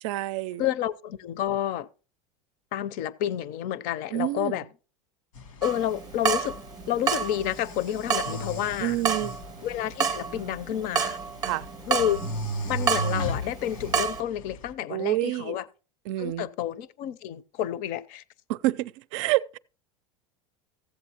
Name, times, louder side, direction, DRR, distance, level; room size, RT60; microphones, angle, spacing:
voice 1, 0.0-0.7 4.1-4.6 8.8-9.3 11.4-11.7 14.9-15.6 16.1-16.5 18.5-19.6, right 16 dB, 70° right, 0.4 m, -28 dB
voice 2, 0.6-1.9 2.7-4.6 5.6-6.6 6.9-9.0 9.6-11.2 11.9-12.2 12.7-15.7 16.2-18.2, left 11 dB, 55° left, 0.6 m, -30 dB
sound 1, 5.4-14.7, equal, 90° left, 1.4 m, -37 dB
Water tap faucet / Drip, 5.6-14.2, right 6 dB, 25° right, 0.7 m, -30 dB
15.0 x 7.7 x 2.9 m
supercardioid pair, 115°, 17 cm